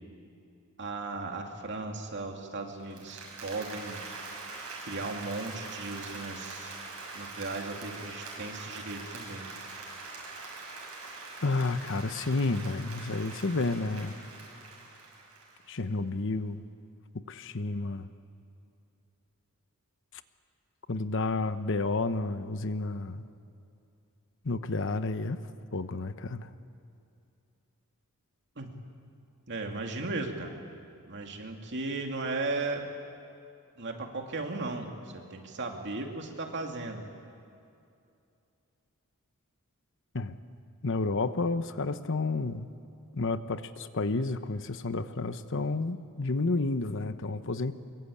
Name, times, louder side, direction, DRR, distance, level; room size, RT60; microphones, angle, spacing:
voice 1, 0.8-4.0 4.8-6.8 7.1-9.5 28.6-28.7 29.5-30.5 31.1-32.8 33.8-34.9 35.3-37.0, right 3 dB, 55° right, 2 dB, 2.7 m, -36 dB
Applause, 2.8-15.8, right 3 dB, 75° right, 6.8 m, -43 dB
voice 2, 11.4-14.2 15.7-16.7 17.1-18.1 20.9-23.2 24.4-25.4 25.7-26.5 40.1-40.4 40.8-42.7 43.1-47.7, left 3 dB, 60° left, 11 dB, 0.9 m, -31 dB
24.5 x 23.0 x 8.7 m, 2.6 s
head